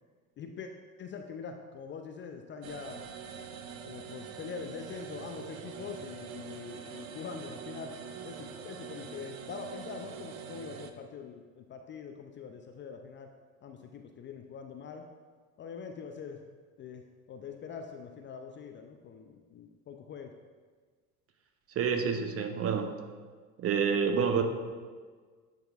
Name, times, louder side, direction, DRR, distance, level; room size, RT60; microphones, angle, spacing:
voice 1, 0.4-0.7 1.0-3.0 3.8-7.9 8.2-13.3 13.6-15.0 15.6-16.4 16.8-20.3, left 6 dB, 30° left, 5 dB, 0.4 m, -43 dB
sound 1, 2.6-10.9, right 7 dB, 80° right, 0.6 m, -44 dB
voice 2, 21.8-22.9 23.6-24.4, right 6 dB, 35° right, 6 dB, 0.7 m, -28 dB
10.5 x 4.0 x 2.4 m, 1.5 s
hypercardioid pair, 70°, 41 cm